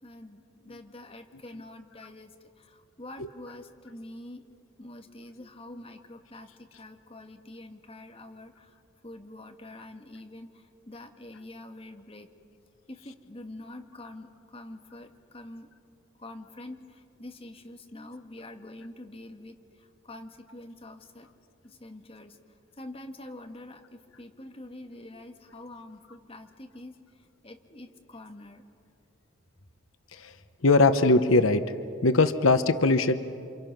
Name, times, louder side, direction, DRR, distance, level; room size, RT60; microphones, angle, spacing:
voice 1, 0.0-4.4 4.8-8.8 9.0-12.3 12.9-15.7 16.2-21.3 21.6-22.4 22.8-27.0 27.4-28.6, left 1 dB, 30° left, 5 dB, 1.5 m, -46 dB
voice 2, 30.6-31.7 32.0-33.1, left 3 dB, 90° left, 10 dB, 0.9 m, -21 dB
28.5 x 26.5 x 6.0 m, 2.5 s
head